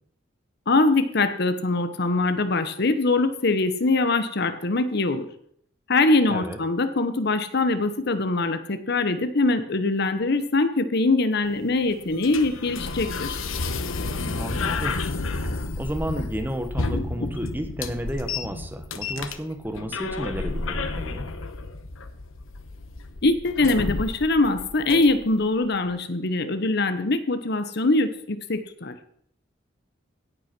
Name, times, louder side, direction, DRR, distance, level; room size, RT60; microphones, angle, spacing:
voice 1, 0.7-5.3 5.9-13.4 16.9-17.0 23.2-29.0, left 2 dB, 55° left, 10 dB, 0.9 m, -23 dB
sound 1, 11.4-25.4, left 3 dB, 85° left, 1.0 m, -31 dB
voice 2, 14.2-15.0 15.4-21.2, equal, 10° right, 6 dB, 1.3 m, -32 dB
17.0 x 5.9 x 6.0 m, 0.66 s
head